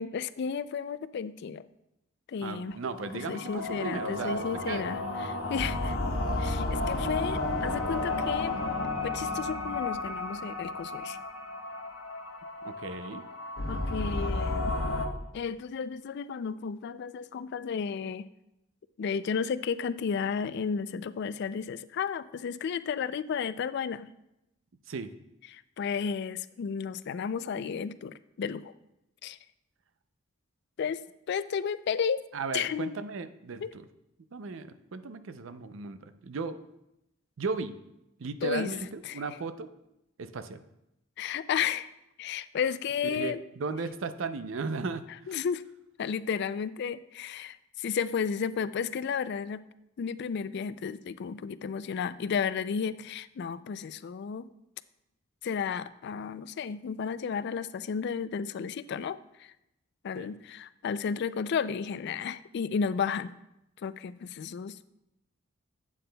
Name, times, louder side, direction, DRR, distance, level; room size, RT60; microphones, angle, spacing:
voice 1, 0.0-1.7 2.3-2.8 3.3-6.0 6.4-8.5 9.0-11.2 13.7-14.7 15.3-18.3 19.0-24.1 25.5-28.7 29.2-29.4 30.8-31.0 31.3-32.2 32.5-33.0 33.6-33.7 38.4-38.7 39.0-39.2 41.2-41.9 42.2-43.4 45.3-45.6 46.0-49.6 50.0-54.5 55.4-59.5 60.0-63.4 63.8-64.9, left 6 dB, 55° left, 15 dB, 0.3 m, -33 dB
voice 2, 2.4-4.9 12.6-13.2 24.9-25.1 32.3-33.9 34.3-36.6 37.4-37.8 38.2-39.7 40.2-40.6 43.0-45.4 60.2-60.3, right 4 dB, 70° right, 11 dB, 0.5 m, -36 dB
sound 1, 2.8-15.1, left 2 dB, 80° left, 1.0 m, -32 dB
11.5 x 8.5 x 2.2 m, 0.86 s
head